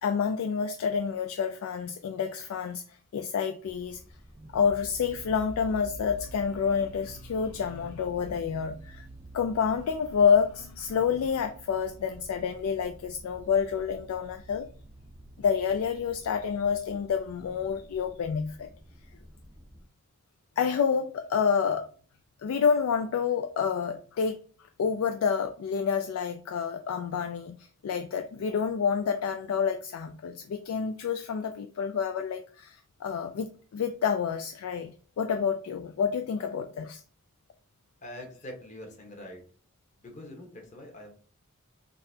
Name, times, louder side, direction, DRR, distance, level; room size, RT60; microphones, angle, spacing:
voice 1, 0.0-4.0 4.5-9.1 9.3-14.7 15.4-18.7 20.6-21.9 22.4-24.4 24.8-37.0, left 6 dB, 75° left, 0.3 m, -28 dB
sound 1, 3.7-19.8, right 2 dB, 20° right, 0.4 m, -50 dB
voice 2, 38.0-39.4 40.0-41.1, left 1 dB, 35° left, 1.0 m, -44 dB
3.9 x 2.6 x 2.7 m
head